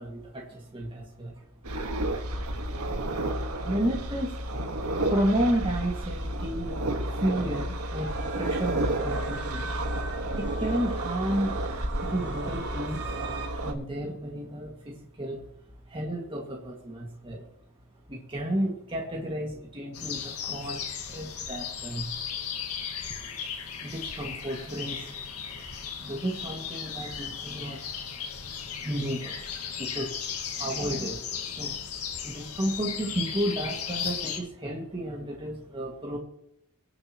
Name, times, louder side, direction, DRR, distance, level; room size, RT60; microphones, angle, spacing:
voice 1, 0.0-1.4 3.6-4.5 5.1-9.9 10.4-11.6 12.0-13.0 13.5-15.4 15.8-17.5 18.1-22.1 23.8-25.2 26.0-27.8 28.8-30.2 30.5-31.8 32.2-36.2, right 1 dB, 25° right, -2 dB, 2.0 m, -32 dB
sound 1, 1.6-13.7, right 1 dB, 80° right, 1.5 m, -31 dB
sound 2, 7.9-13.5, right 3 dB, 50° right, 2.0 m, -41 dB
sound 3, 19.9-34.4, left 7 dB, 85° left, 1.8 m, -36 dB
23.5 x 7.9 x 3.0 m, 0.76 s
head